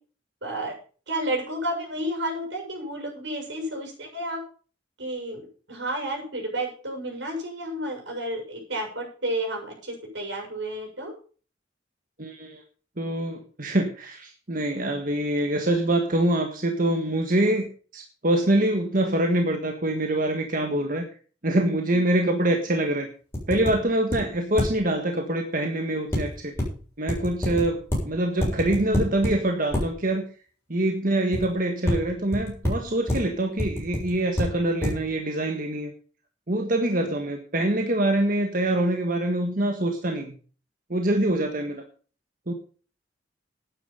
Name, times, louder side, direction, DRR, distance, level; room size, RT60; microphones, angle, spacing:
voice 1, 0.4-0.7 1.1-4.4 5.0-11.1 21.9-22.0 27.4-27.7 36.7-37.0, right 1 dB, 85° right, 2 dB, 7.1 m, -31 dB
voice 2, 12.2-12.6 13.0-21.1 21.4-23.1 23.5-26.5 27.0-30.2 30.7-35.9 36.5-40.3 40.9-41.8 42.5-42.6, right 1 dB, 50° right, 4 dB, 1.6 m, -25 dB
sound 1, 23.3-23.7 24.1-24.2 24.6-24.7 26.1-26.7 27.1-27.6 27.9-28.0 28.4-29.3 29.7-29.8 31.3-31.5 31.8-32.0 32.3-32.7 33.1-33.2 33.6-34.4 34.8-34.9, left 1 dB, 15° left, 7.5 m, -25 dB
12.0 x 10.0 x 5.7 m, 0.40 s
head